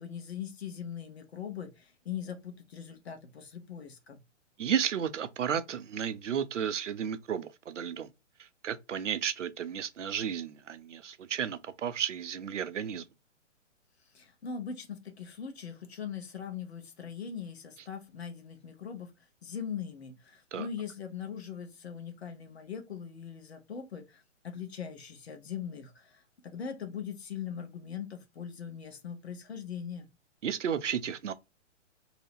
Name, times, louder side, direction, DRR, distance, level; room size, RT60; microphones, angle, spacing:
voice 1, 0.0-4.2 14.1-19.1 19.4-30.1, left 7 dB, 60° left, 0.8 m, -41 dB
voice 2, 4.6-8.1 8.4-13.0 20.5-20.7 30.4-31.3, right 8 dB, 70° right, 0.5 m, -33 dB
2.7 x 2.0 x 3.2 m
figure-of-eight pair, 120°, 37 cm